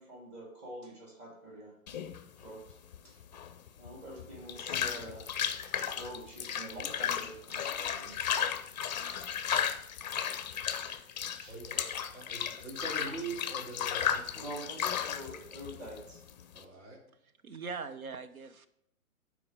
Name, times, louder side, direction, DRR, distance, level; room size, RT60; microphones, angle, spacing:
voice 1, 0.0-1.7 2.4-2.8 3.0-3.2 3.8-5.3 5.9-8.9 9.5-9.6 10.5-11.5 14.4-16.2, right 1 dB, 25° right, -3 dB, 3.4 m, -46 dB
sound 1, 1.9-16.6, left 8 dB, 30° left, 0.5 m, -35 dB
voice 2, 11.5-14.5 16.5-17.0, right 3 dB, 55° right, -2 dB, 3.5 m, -43 dB
voice 3, 17.4-18.7, right 5 dB, 75° right, 10 dB, 1.0 m, -41 dB
12.0 x 4.9 x 5.2 m, 0.75 s
figure-of-eight pair, 130°, 43 cm